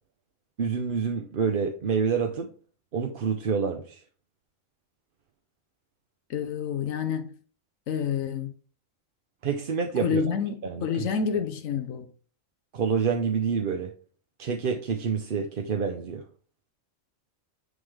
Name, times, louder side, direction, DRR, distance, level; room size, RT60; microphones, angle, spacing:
voice 1, 0.6-2.5 2.9-4.0 9.4-10.2 10.6-11.1 12.7-13.9 14.4-16.2, right 6 dB, 50° right, 0.8 m, -27 dB
voice 2, 6.3-7.3 7.9-8.5 10.0-12.1, left 7 dB, 85° left, 1.2 m, -28 dB
9.5 x 3.7 x 3.3 m
omnidirectional pair, 1.3 m